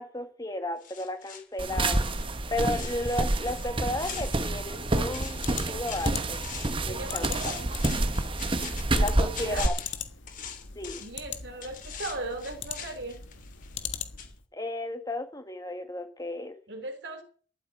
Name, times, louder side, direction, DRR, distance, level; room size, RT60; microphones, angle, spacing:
voice 1, 0.0-2.1 2.5-6.5 6.8-7.5 8.9-9.7 10.8-11.0 14.5-16.5, left 1 dB, 20° left, 2.0 m, -34 dB
sound 1, 0.8-4.9 5.1-6.9 7.2-11.2 11.6-13.9 14.2-14.3, left 7 dB, 45° left, 2.9 m, -43 dB
sound 2, 1.6-9.7, right 2 dB, 30° right, 1.1 m, -28 dB
sound 3, 5.3-14.4, left 7 dB, 85° left, 1.7 m, -41 dB
voice 2, 6.9-7.7 8.9-9.7 11.0-13.2 16.7-17.2, right 2 dB, 60° right, 3.5 m, -38 dB
13.5 x 8.0 x 9.6 m
head